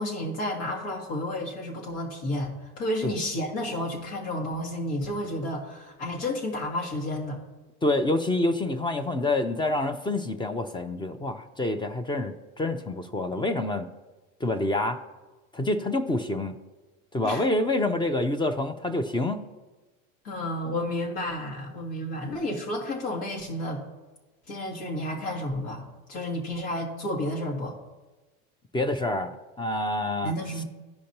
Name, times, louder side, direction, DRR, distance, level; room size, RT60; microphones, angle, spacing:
voice 1, 0.0-7.4 17.2-17.5 20.2-23.8 24.5-27.8 30.2-30.6, left 1 dB, 70° left, -2 dB, 2.0 m, -31 dB
voice 2, 7.8-13.9 14.4-15.0 15.5-16.5 17.1-19.4 28.7-30.3, left 2 dB, 10° left, 9 dB, 0.4 m, -27 dB
14.0 x 5.1 x 2.9 m, 1.2 s
supercardioid pair, 105°, 42 cm